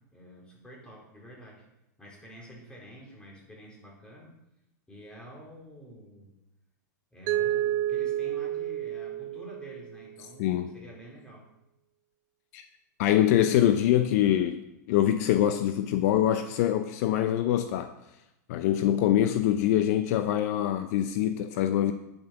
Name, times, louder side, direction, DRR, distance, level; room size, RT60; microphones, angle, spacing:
voice 1, 0.1-1.7 2.0-4.3 4.9-6.3 7.1-11.4, equal, 10° left, -3 dB, 4.1 m, -48 dB
Mallet percussion, 7.3-10.2, right 12 dB, 40° right, 0.6 m, -30 dB
voice 2, 10.4-10.7 12.5-12.6 13.0-14.6 14.9-17.9 18.5-21.9, left 11 dB, 55° left, 10 dB, 0.7 m, -24 dB
10.5 x 7.7 x 5.8 m, 0.89 s
supercardioid pair, 135°, 10 cm